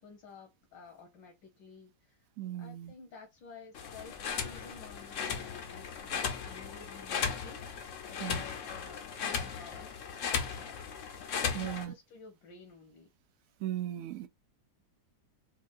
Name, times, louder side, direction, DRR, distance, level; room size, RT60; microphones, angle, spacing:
voice 1, 0.0-2.3 2.6-10.8 11.6-13.1, left 5 dB, 80° left, 1.7 m, -53 dB
voice 2, 2.4-2.9 8.2-8.4 11.5-11.9 13.6-14.3, right 12 dB, 75° right, 0.7 m, -37 dB
sound 1, 3.7-11.8, left 6 dB, 60° left, 0.8 m, -36 dB
4.4 x 2.4 x 2.5 m
omnidirectional pair, 1.9 m